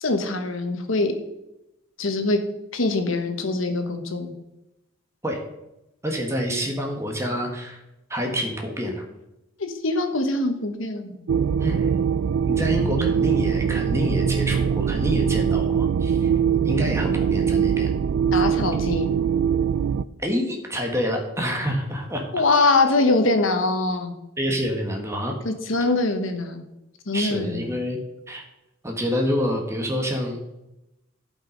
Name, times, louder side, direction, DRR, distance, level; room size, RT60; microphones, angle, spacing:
voice 1, 0.0-1.1 2.0-2.4 2.7-4.3 9.6-11.1 18.3-19.1 22.3-24.1 25.4-26.6 27.1-27.7, left 2 dB, 75° left, 6 dB, 1.2 m, -23 dB
voice 2, 6.0-7.8 8.1-9.0 11.6-11.9 12.4-16.3 16.6-17.9 20.2-22.2 24.4-25.3 27.1-28.0 28.3-28.4 28.8-30.4, equal, 15° right, 2 dB, 1.5 m, -27 dB
sound 1, 11.3-20.0, right 7 dB, 85° right, 0.3 m, -22 dB
11.5 x 5.6 x 5.2 m, 0.92 s
head